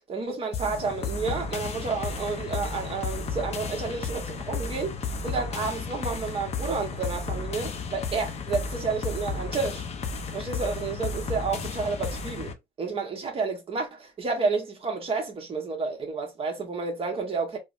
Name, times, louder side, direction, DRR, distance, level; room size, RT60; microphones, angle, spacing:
voice 1, 0.1-9.8 10.3-17.6, right 4 dB, 35° right, 1.1 m, -30 dB
sound 1, 0.5-12.5, left 4 dB, 40° left, 0.6 m, -33 dB
3.4 x 2.2 x 2.5 m
cardioid pair, 110°, 17 cm